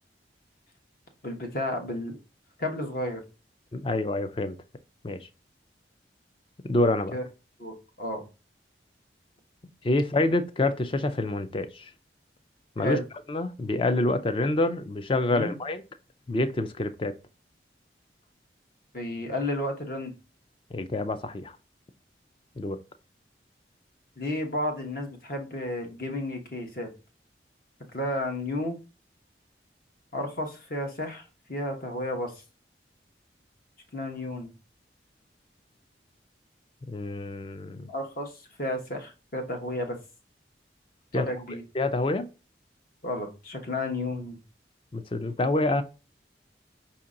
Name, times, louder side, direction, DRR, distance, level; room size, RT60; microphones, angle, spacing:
voice 1, 1.2-2.2 2.6-3.2 7.1-7.2 7.6-8.3 12.8-13.0 15.3-15.5 18.9-20.1 24.2-26.9 27.9-28.8 30.1-31.2 31.5-32.3 33.9-34.5 37.9-38.3 38.6-40.0 41.1-41.6 43.0-44.4, left 1 dB, 50° left, 1.0 m, -32 dB
voice 2, 3.7-4.6 5.0-5.2 6.6-7.2 9.8-11.9 12.8-13.0 13.3-15.8 16.3-17.1 20.7-21.5 22.6-22.8 36.9-37.9 41.1-41.3 41.7-42.3 44.9-45.8, left 2 dB, 30° left, 0.4 m, -27 dB
5.2 x 2.8 x 3.7 m
head